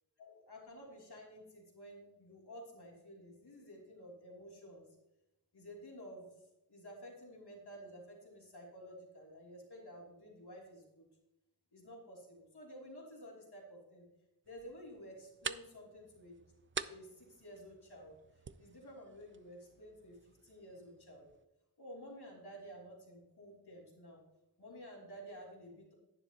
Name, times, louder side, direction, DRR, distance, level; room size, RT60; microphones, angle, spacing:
voice 1, 0.2-4.9 5.5-6.2 6.7-11.0 11.7-14.0 14.5-16.3 16.9-18.2 18.6-21.3 21.8-24.2 24.6-25.9, equal, 75° left, -3 dB, 3.2 m, -52 dB
sound 1, 14.4-21.5, right 5 dB, 30° right, 0.4 m, -48 dB
11.0 x 9.9 x 2.9 m, 0.91 s
wide cardioid pair, 65°, 39 cm